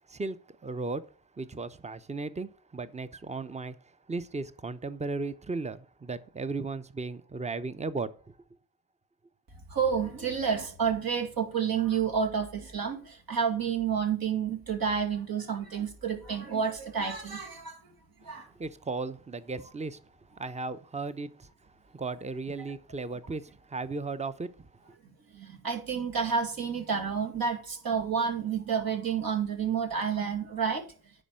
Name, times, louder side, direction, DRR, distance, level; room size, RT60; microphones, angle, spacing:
voice 1, 0.6-1.0 1.4-3.8 4.1-8.4 18.3-20.0 20.4-21.5 21.9-24.5 24.9-25.0, right 3 dB, 20° right, 0.8 m, -36 dB
voice 2, 9.7-17.8 18.3-18.5 25.3-30.9, right 6 dB, 65° right, 2.2 m, -30 dB
10.0 x 4.3 x 7.5 m
cardioid pair, 60°, 38 cm